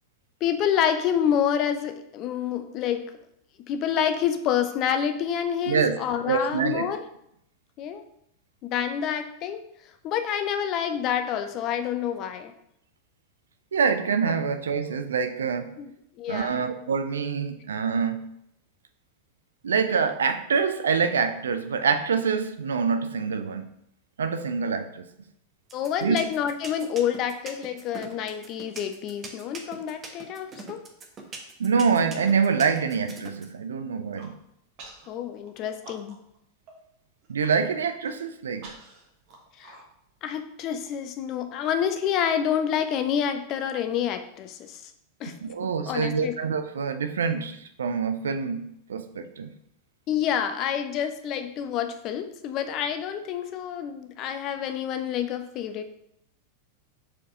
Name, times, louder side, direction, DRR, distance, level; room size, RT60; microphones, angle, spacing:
voice 1, 0.4-3.0 3.7-7.0 7.8-8.0 8.6-9.6 10.0-12.5 15.8-15.9 16.2-16.6 25.7-30.8 35.1-36.2 39.6-39.8 40.2-44.9 45.2-45.4 45.8-46.4 50.1-55.9, left 9 dB, 35° left, 8 dB, 0.7 m, -28 dB
voice 2, 5.7-6.0 6.3-6.8 13.7-15.7 16.3-18.3 19.6-23.6 24.2-25.1 26.0-26.2 31.6-34.3 37.3-38.7 45.3-49.5, right 5 dB, 65° right, 10 dB, 0.5 m, -26 dB
sound 1, 25.7-33.4, right 4 dB, 25° right, 1.2 m, -40 dB
Human voice, 33.9-34.3 34.8-35.1 35.5-36.4 36.7-36.8 37.2-37.5 38.0-40.9, right 2 dB, 40° right, 1.4 m, -48 dB
4.8 x 4.4 x 5.6 m, 0.75 s
figure-of-eight pair, 90°, 0 cm